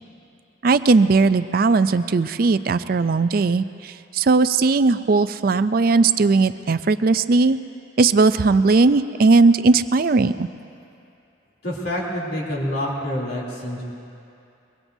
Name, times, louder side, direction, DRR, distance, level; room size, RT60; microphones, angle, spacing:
voice 1, 0.6-7.6 8.0-10.5, right 3 dB, 45° right, 13 dB, 0.4 m, -18 dB
voice 2, 11.6-13.8, equal, 55° left, -3 dB, 3.1 m, -27 dB
23.0 x 23.0 x 2.7 m, 2.6 s
head